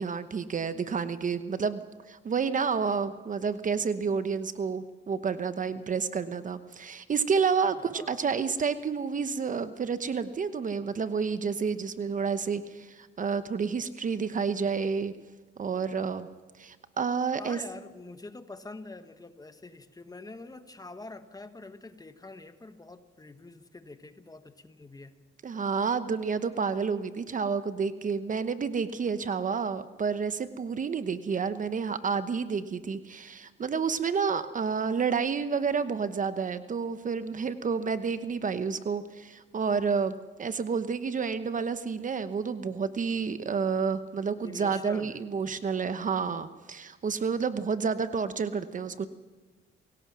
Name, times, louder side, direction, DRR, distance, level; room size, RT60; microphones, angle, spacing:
voice 1, 0.0-1.8 2.1-15.1 15.6-16.3 16.6-17.6 25.4-49.1, right 5 dB, 40° right, 12 dB, 1.0 m, -30 dB
voice 2, 7.9-8.2 17.4-25.1 44.4-45.2, left 3 dB, 20° left, 9 dB, 1.4 m, -45 dB
27.5 x 17.0 x 6.2 m, 1.3 s
cardioid pair, 90°, 20 cm